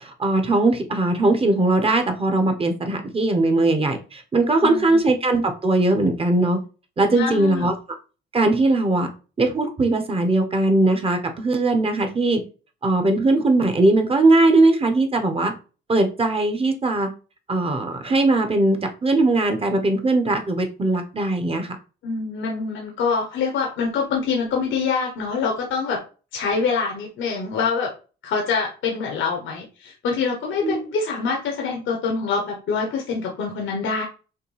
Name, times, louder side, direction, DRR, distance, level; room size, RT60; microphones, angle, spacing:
voice 1, 0.0-6.6 7.0-7.7 8.3-9.1 9.4-12.4 12.8-15.5 15.9-17.1 17.5-21.8 30.6-30.9, right 2 dB, 30° right, 6 dB, 1.0 m, -20 dB
voice 2, 4.6-5.0 7.1-7.7 22.0-26.0 26.3-27.9 28.2-34.0, left 5 dB, 75° left, 0 dB, 1.1 m, -25 dB
5.7 x 2.3 x 3.3 m, 0.35 s
cardioid pair, 90°, 20 cm